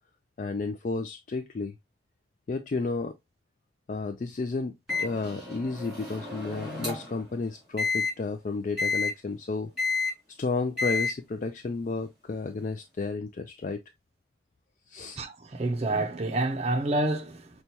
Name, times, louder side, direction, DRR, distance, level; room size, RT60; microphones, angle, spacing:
voice 1, 0.4-1.8 2.5-3.1 3.9-9.7 10.3-13.8 14.9-15.2, left 3 dB, 45° left, 0.3 m, -32 dB
Microwave oven, 4.9-7.2 7.8-8.1 8.8-9.1 9.8-10.1 10.8-11.1, left 4 dB, 5° right, 2.3 m, -30 dB
voice 2, 15.2-17.6, right 2 dB, 35° right, 0.6 m, -28 dB
5.9 x 2.3 x 2.7 m
head